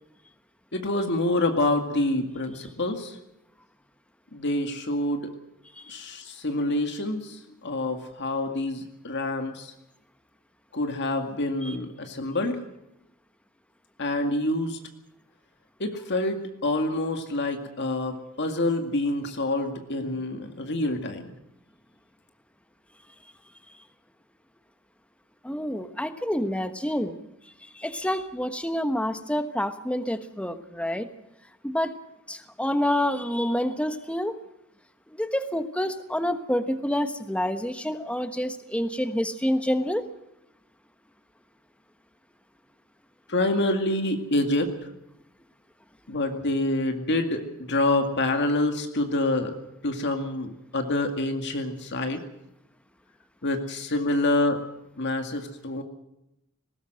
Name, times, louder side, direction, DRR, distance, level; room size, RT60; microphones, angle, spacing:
voice 1, 0.7-3.2 4.3-5.3 5.9-9.7 10.7-12.6 14.0-14.8 15.8-21.3 43.3-44.7 46.1-47.4 47.7-49.5 49.8-52.2 53.4-54.6 55.0-55.8, left 2 dB, 55° left, 5 dB, 2.2 m, -27 dB
voice 2, 25.4-27.2 27.8-31.1 31.6-31.9 32.3-34.3 35.1-40.1, left 1 dB, 5° left, 9 dB, 1.2 m, -28 dB
20.0 x 18.0 x 7.8 m, 0.84 s
head